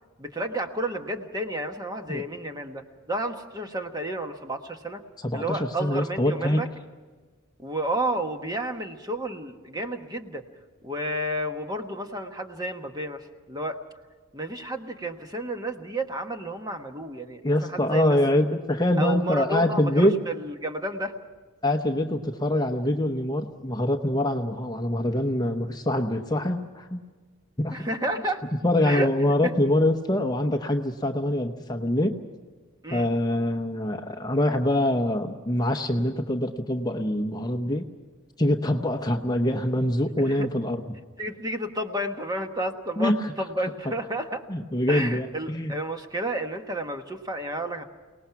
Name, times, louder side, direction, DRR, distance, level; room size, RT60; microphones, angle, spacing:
voice 1, 0.2-2.8 3.1-5.0 5.3-6.7 7.6-10.4 10.8-13.8 14.3-18.4 19.0-21.1 27.7-28.5 28.8-29.1 29.4-29.5 32.8-33.1 40.2-40.5 41.2-44.4 44.9-47.8, right 1 dB, 20° right, 5 dB, 1.2 m, -31 dB
voice 2, 5.2-6.6 17.4-20.1 21.6-27.0 27.6-27.9 28.6-32.1 32.9-37.8 38.4-40.8 43.0-43.3 44.5-45.7, left 1 dB, 20° left, 5 dB, 0.8 m, -24 dB
29.5 x 19.0 x 5.8 m, 1.4 s
head